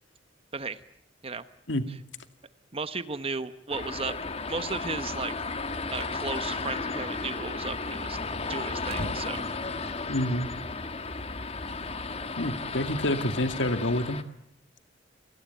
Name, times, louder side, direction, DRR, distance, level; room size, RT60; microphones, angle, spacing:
voice 1, 2.7-4.1 4.5-5.3 5.9-8.2 8.5-9.4, right 4 dB, 30° right, 11 dB, 1.0 m, -34 dB
sound 1, 3.7-14.2, left 3 dB, 35° left, 1.7 m, -34 dB
sound 2, 5.9-6.2 6.5-6.6 6.8-6.9 7.4-10.4, right 1 dB, 55° right, 5.1 m, -44 dB
voice 2, 10.1-10.5 12.4-14.2, left 1 dB, 75° left, 9 dB, 2.2 m, -27 dB
29.0 x 19.5 x 9.2 m, 0.76 s
head